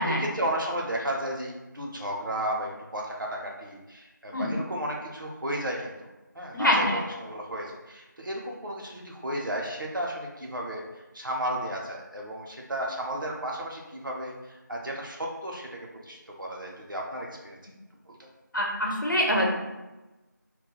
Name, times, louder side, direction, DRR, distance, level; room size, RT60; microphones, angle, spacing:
voice 1, 0.0-6.1 6.3-10.8 11.1-17.6 18.1-18.3, right 1 dB, 90° right, -2 dB, 0.6 m, -33 dB
voice 2, 6.5-7.0 18.5-19.5, equal, 75° left, -1 dB, 0.7 m, -24 dB
3.0 x 2.2 x 2.2 m, 1.1 s
figure-of-eight pair, 180°, 11 cm